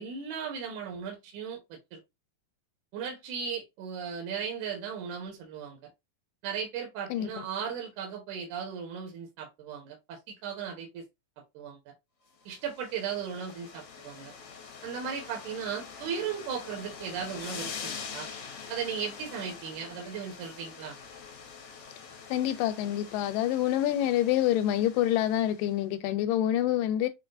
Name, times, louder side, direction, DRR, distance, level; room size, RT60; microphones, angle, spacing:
voice 1, 0.0-2.0 2.9-5.8 6.4-11.0 11.5-11.8 12.5-14.3 14.8-18.3 18.7-21.0, right 7 dB, 70° right, 2.3 m, -36 dB
voice 2, 7.1-7.4 22.3-27.1, left 12 dB, 85° left, 2.2 m, -27 dB
sound 1, 12.5-25.7, left 6 dB, 65° left, 2.1 m, -44 dB
6.4 x 2.3 x 2.5 m
omnidirectional pair, 3.9 m